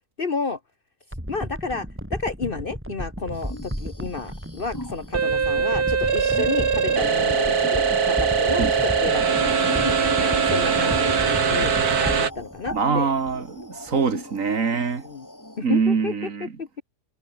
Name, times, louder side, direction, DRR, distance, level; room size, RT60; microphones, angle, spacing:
voice 1, 0.2-0.6 1.3-11.2 11.5-11.7 12.2-13.1 15.0-15.3 15.6-16.1 16.4-16.8, left 4 dB, 40° left, 1.0 m, -31 dB
sound 1, 1.1-13.6 13.9-14.0, equal, 5° right, 7.8 m, -34 dB
sound 2, 3.3-15.6, left 1 dB, 10° left, 3.3 m, -40 dB
sound 3, 5.1-12.3, right 6 dB, 75° right, 2.5 m, -21 dB
voice 2, 12.7-15.1 15.6-16.5, right 5 dB, 60° right, 2.2 m, -24 dB
omnidirectional pair, 1.6 m